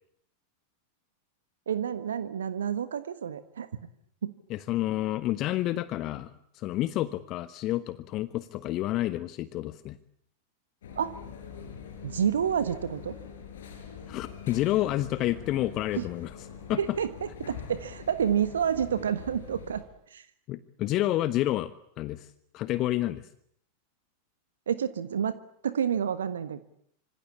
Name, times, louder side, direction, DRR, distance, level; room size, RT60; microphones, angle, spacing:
voice 1, 1.7-3.7 4.2-4.3 10.9-11.1 12.0-13.1 15.9-16.1 16.7-19.8 20.1-20.2 24.7-26.6, right 8 dB, 65° right, 13 dB, 1.3 m, -29 dB
voice 2, 4.5-10.0 14.1-16.3 16.7-16.8 20.5-21.7 22.0-23.3, left 15 dB, 35° left, 14 dB, 1.2 m, -29 dB
sound 1, 10.8-19.8, left 7 dB, 60° left, 6.4 m, -44 dB
26.5 x 26.0 x 8.6 m, 0.69 s
figure-of-eight pair, 90°, 0 cm